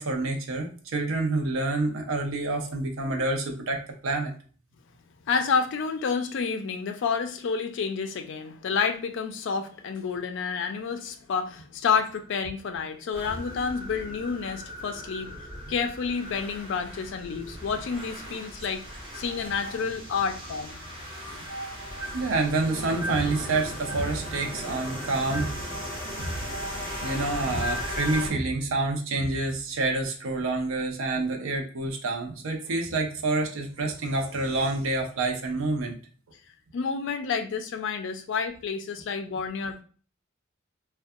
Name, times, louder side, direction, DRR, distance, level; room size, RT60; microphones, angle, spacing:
voice 1, 0.0-4.3 22.1-25.6 26.2-26.4 27.0-35.9, right 2 dB, 70° right, 3 dB, 0.5 m, -28 dB
voice 2, 5.3-15.3 15.7-18.8 19.1-20.8 21.3-21.5 36.7-39.8, left 5 dB, 60° left, 7 dB, 0.4 m, -29 dB
sound 1, 13.1-28.3, equal, 25° right, 0.7 m, -37 dB
2.6 x 2.2 x 2.3 m, 0.41 s
head